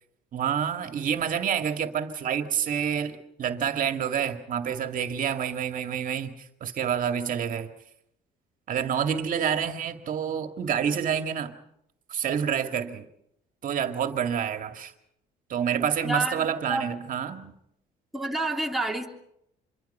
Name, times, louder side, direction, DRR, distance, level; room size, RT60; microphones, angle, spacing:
voice 1, 0.3-7.7 8.7-11.6 12.1-13.1 13.6-14.9 15.5-17.6, right 8 dB, 55° right, 2.1 m, -28 dB
voice 2, 16.0-16.9 18.1-19.1, right 2 dB, ahead, 3.1 m, -29 dB
27.0 x 23.0 x 5.6 m
cardioid pair, 110°, 17 cm